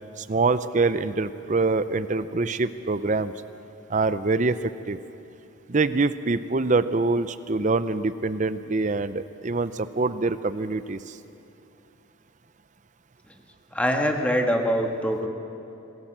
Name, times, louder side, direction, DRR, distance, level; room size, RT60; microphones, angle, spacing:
voice 1, 0.2-3.3 3.9-5.0 5.7-11.2, right 3 dB, 40° right, 13 dB, 0.6 m, -25 dB
voice 2, 13.7-15.3, equal, 5° left, 2 dB, 1.7 m, -23 dB
26.0 x 18.0 x 7.4 m, 2.8 s
head